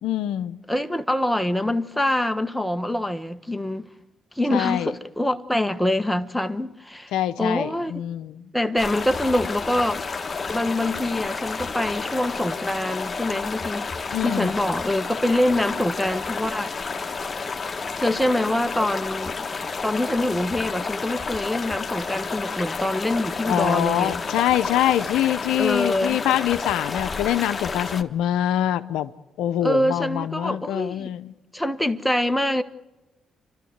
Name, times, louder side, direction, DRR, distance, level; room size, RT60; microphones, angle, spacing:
voice 1, 0.0-0.6 4.5-4.9 7.1-8.5 14.1-14.5 23.5-29.1 29.4-31.3, left 12 dB, 80° left, 0.6 m, -24 dB
voice 2, 0.7-3.9 4.3-7.1 7.4-8.0 8.5-10.0 10.5-13.9 14.2-16.7 17.7-19.4 19.8-24.2 25.6-26.2 29.6-31.1 31.5-32.6, left 1 dB, 5° left, 1.3 m, -25 dB
sound 1, 8.8-28.0, left 4 dB, 35° left, 1.5 m, -30 dB
29.5 x 13.0 x 8.0 m
supercardioid pair, 55°, 0 cm